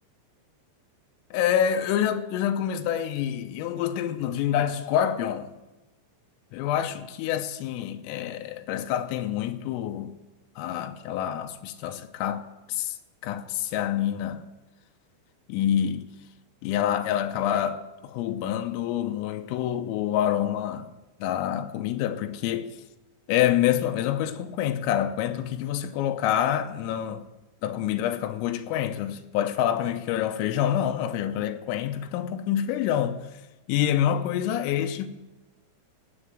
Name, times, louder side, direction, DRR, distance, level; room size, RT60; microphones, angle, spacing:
voice 1, 1.3-5.5 6.5-10.1 10.6-12.4 12.7-13.0 13.2-14.4 15.5-16.1 16.6-20.9 21.2-22.7 23.3-27.3 27.6-33.2 33.7-35.1, left 10 dB, 85° left, 3.6 m, -27 dB
16.5 x 8.8 x 7.8 m
omnidirectional pair, 5.9 m